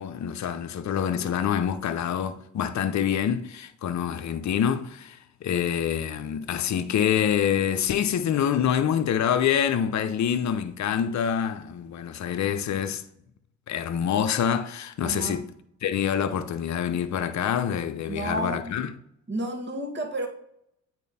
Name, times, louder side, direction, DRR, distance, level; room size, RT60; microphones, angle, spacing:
voice 1, 0.0-13.0 13.7-15.5 15.8-18.9, left 8 dB, 50° left, 0.8 m, -26 dB
voice 2, 15.0-15.4 18.1-18.7 19.3-20.3, right 1 dB, 30° right, 2.0 m, -31 dB
8.3 x 4.4 x 4.2 m
supercardioid pair, 65°, 35 cm